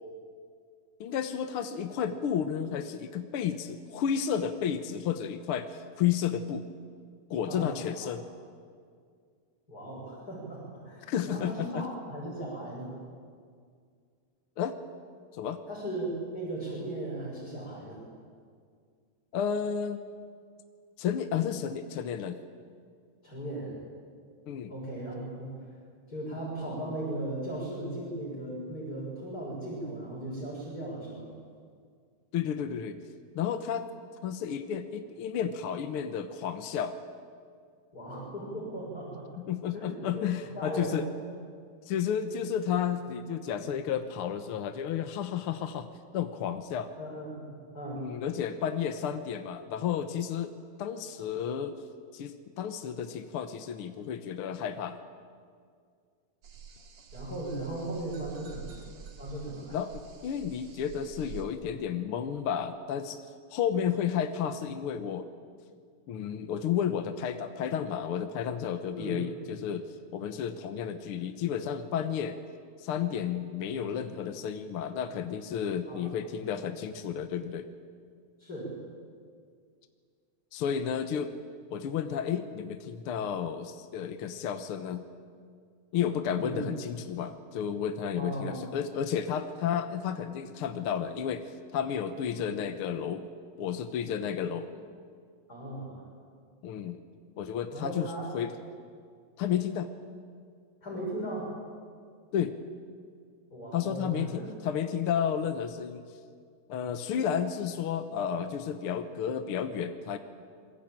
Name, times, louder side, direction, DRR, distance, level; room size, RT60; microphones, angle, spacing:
voice 1, 1.0-6.7 7.3-8.2 11.1-11.8 14.6-14.8 15.3-15.6 19.3-20.0 21.0-22.4 24.5-24.7 32.3-33.0 33.3-33.9 34.2-36.9 39.4-41.1 41.8-45.9 46.1-46.9 48.0-50.5 50.8-51.7 52.1-55.0 59.7-63.2 63.5-65.3 66.1-69.9 70.1-72.4 72.8-77.7 80.5-81.3 81.7-85.0 85.9-93.3 93.6-94.7 96.6-97.0 97.4-98.5 99.4-99.9 102.3-102.6 103.7-106.0 106.7-110.2, left 8 dB, 65° left, 8 dB, 1.5 m, -32 dB
voice 2, 7.5-8.1 9.7-12.9 15.7-18.0 23.2-23.8 24.7-25.5 26.1-31.3 37.9-39.3 39.7-40.3 40.6-41.0 47.0-48.0 57.1-58.8 59.2-59.8 68.9-69.2 75.9-76.1 78.4-78.7 86.4-86.6 88.2-88.7 95.5-96.1 97.7-98.3 100.8-101.5 103.5-104.4, right 1 dB, 25° left, -5 dB, 7.0 m, -37 dB
sound 1, 56.4-61.5, right 5 dB, 60° right, 3.4 m, -47 dB
27.5 x 21.5 x 9.0 m, 2.1 s
omnidirectional pair, 3.5 m